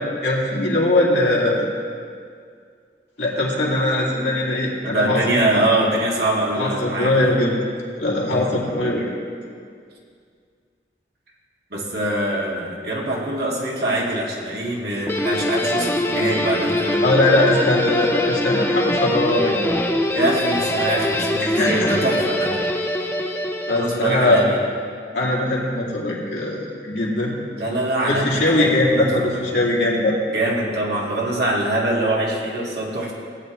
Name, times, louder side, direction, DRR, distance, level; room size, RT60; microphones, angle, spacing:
voice 1, 0.2-1.7 3.2-5.2 6.5-7.6 8.0-9.1 17.0-19.6 21.4-21.9 23.7-24.4 25.1-27.3 28.1-30.2, left 2 dB, 75° left, -4 dB, 2.4 m, -20 dB
voice 2, 4.8-7.3 8.2-8.9 11.7-17.2 20.1-22.5 23.7-24.6 27.6-29.4 30.3-33.1, right 1 dB, 65° right, -3 dB, 1.9 m, -24 dB
Guitar, 15.1-24.4, left 1 dB, 15° left, 0.6 m, -23 dB
16.5 x 8.8 x 3.2 m, 2.2 s
head